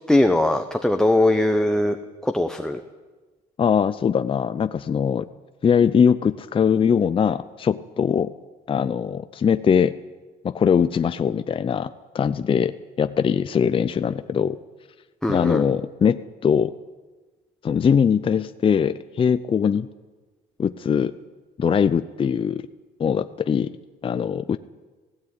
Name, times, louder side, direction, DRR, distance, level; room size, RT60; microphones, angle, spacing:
voice 1, 0.1-2.0 2.2-2.8 15.2-15.6, left 1 dB, 5° left, 5 dB, 1.1 m, -20 dB
voice 2, 3.6-5.3 5.6-8.3 8.7-9.9 10.4-14.6 15.3-16.7 17.6-19.9 20.6-21.1 21.6-22.6 23.0-23.7 24.0-24.6, left 7 dB, 30° left, 11 dB, 0.6 m, -21 dB
17.0 x 16.0 x 9.6 m, 1.3 s
cardioid pair, 110°, 17 cm